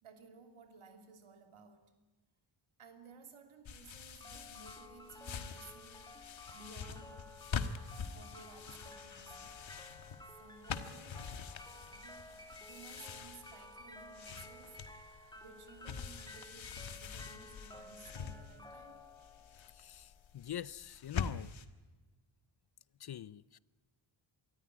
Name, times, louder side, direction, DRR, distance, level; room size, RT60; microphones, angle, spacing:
voice 1, 0.0-1.9 2.8-6.2 6.5-7.4 8.1-9.6 10.3-11.3 11.7-14.8 15.3-19.0, right 4 dB, 85° right, 2.9 m, -57 dB
sound 1, 3.7-21.7, left 6 dB, 70° left, 1.5 m, -45 dB
sound 2, 4.2-20.2, left 2 dB, 10° left, 2.6 m, -54 dB
sound 3, 7.4-16.3, right 2 dB, 30° right, 4.1 m, -68 dB
voice 2, 19.7-21.5 23.0-23.6, left 11 dB, 50° left, 0.6 m, -44 dB
24.0 x 14.0 x 9.8 m
wide cardioid pair, 90°, 48 cm